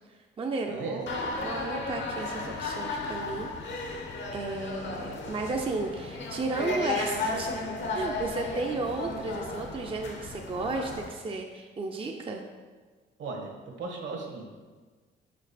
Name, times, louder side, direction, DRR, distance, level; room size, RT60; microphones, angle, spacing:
voice 1, 0.1-3.5 4.3-7.6 7.9-12.4, right 3 dB, 25° right, 2 dB, 0.5 m, -34 dB
voice 2, 0.7-1.0 13.2-13.5 13.8-14.5, right 4 dB, 65° right, 1 dB, 1.3 m, -36 dB
sound 1, 1.1-11.1, left 3 dB, 65° left, 0.9 m, -34 dB
5.1 x 4.8 x 4.2 m, 1.4 s
cardioid pair, 90°, 20 cm